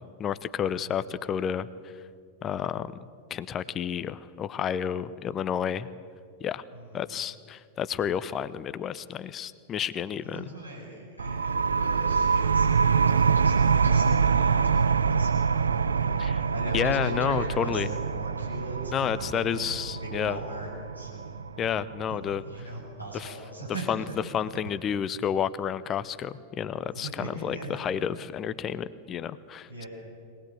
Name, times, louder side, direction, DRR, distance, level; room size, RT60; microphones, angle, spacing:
voice 1, 0.0-1.7 2.4-2.9 3.3-5.9 6.4-6.6 6.9-10.5 16.2-16.4 16.7-17.9 18.9-20.4 21.6-22.4 23.1-23.3 23.9-24.0 24.3-29.9, left 8 dB, 30° left, 16 dB, 0.8 m, -30 dB
voice 2, 6.7-7.0 10.2-20.7 20.9-21.4 22.1-24.1 27.0-27.8 29.7-29.9, right 2 dB, 90° right, -4 dB, 7.9 m, -40 dB
sound 1, 11.2-22.6, right 5 dB, 75° right, 0.6 m, -25 dB
23.0 x 19.0 x 8.8 m, 2.2 s
figure-of-eight pair, 90°, 0 cm